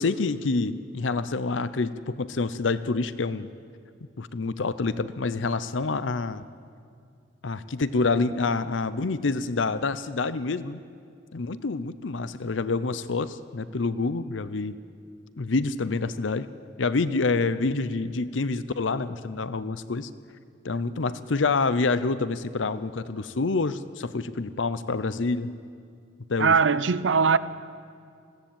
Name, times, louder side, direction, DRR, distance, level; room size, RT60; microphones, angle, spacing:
voice 1, 0.0-3.5 4.2-6.4 7.4-10.8 11.3-14.8 15.4-16.5 16.8-20.1 20.6-25.5 26.3-26.6, left 3 dB, 85° left, 0.7 m, -27 dB
voice 2, 26.4-27.4, right 5 dB, 75° right, 0.6 m, -20 dB
21.5 x 16.5 x 8.9 m
head